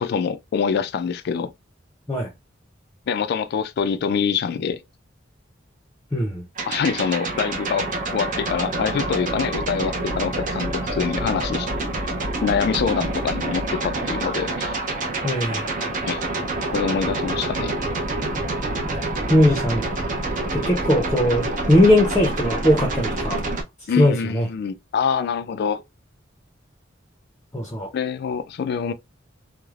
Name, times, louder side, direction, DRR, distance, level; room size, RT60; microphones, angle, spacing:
voice 1, 0.0-1.5 3.1-4.8 6.7-11.7 12.4-14.8 16.1-16.3 16.7-17.7 23.9-25.8 27.9-28.9, left 6 dB, 55° left, 0.3 m, -25 dB
voice 2, 6.1-6.4 15.2-15.6 18.2-18.5 18.8-19.8 20.5-23.4 24.0-24.5 27.5-27.9, left 1 dB, 15° left, 0.6 m, -20 dB
sound 1, 6.5-23.6, right 2 dB, 45° right, 0.6 m, -27 dB
3.1 x 2.1 x 2.3 m
head